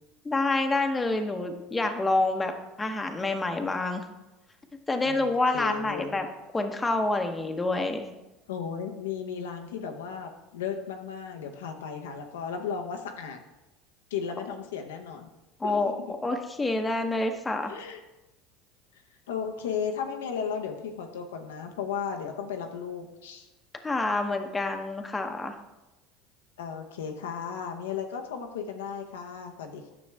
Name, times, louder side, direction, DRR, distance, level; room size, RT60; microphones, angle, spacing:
voice 1, 0.2-2.5 2.8-4.0 4.9-6.3 6.5-8.0 15.6-15.9 16.2-17.7 23.8-25.6, left 2 dB, 15° left, 5 dB, 1.0 m, -27 dB
voice 2, 5.0-6.2 8.5-13.4 14.1-15.3 15.6-16.1 17.6-18.0 19.3-23.5 26.6-29.9, left 7 dB, 85° left, 4 dB, 0.8 m, -35 dB
9.7 x 6.2 x 3.5 m, 1.0 s
hypercardioid pair, 90°, 0 cm